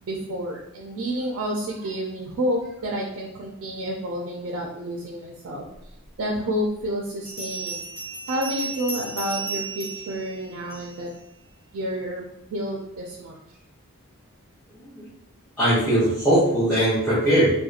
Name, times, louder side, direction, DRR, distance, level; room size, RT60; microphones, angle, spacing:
voice 1, 0.0-5.6 6.2-7.8 8.3-11.1 11.7-13.4, equal, 65° right, -1 dB, 0.4 m, -29 dB
Bell, 6.0-6.1 7.2-11.1, right 4 dB, 50° left, 1.2 m, -34 dB
voice 2, 15.6-17.5, right 1 dB, 5° left, -11 dB, 0.7 m, -20 dB
2.8 x 2.1 x 2.4 m, 0.81 s
head